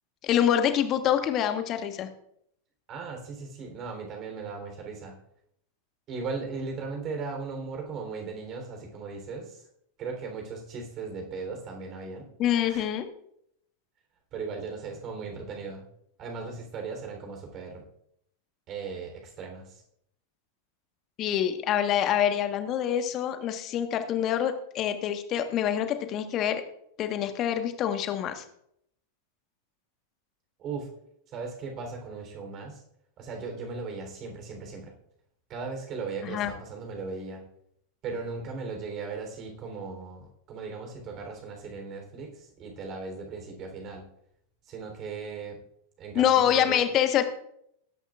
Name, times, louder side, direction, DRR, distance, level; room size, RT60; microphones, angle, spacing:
voice 1, 0.2-2.1 12.4-13.1 21.2-26.6 27.0-28.4 36.2-36.5 46.1-47.2, left 10 dB, 35° left, 8 dB, 1.4 m, -26 dB
voice 2, 2.9-5.2 6.1-9.7 10.0-12.3 12.7-12.8 14.3-15.8 16.2-17.8 18.7-19.8 30.6-30.9 31.3-32.8 33.2-34.9 35.5-37.4 38.0-44.1 44.7-45.6 46.0-46.9, right 4 dB, 35° right, 3 dB, 3.6 m, -37 dB
20.5 x 10.5 x 2.5 m, 0.72 s
figure-of-eight pair, 90°, 0 cm